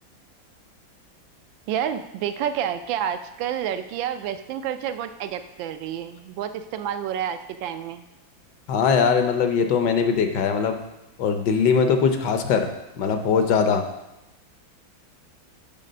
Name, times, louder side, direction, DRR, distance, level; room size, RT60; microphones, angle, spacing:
voice 1, 1.7-8.0, right 9 dB, 80° right, 10 dB, 1.3 m, -29 dB
voice 2, 8.7-10.8 11.2-12.7 13.0-13.8, left 6 dB, 70° left, 6 dB, 1.3 m, -21 dB
7.8 x 4.0 x 6.5 m, 0.95 s
omnidirectional pair, 2.1 m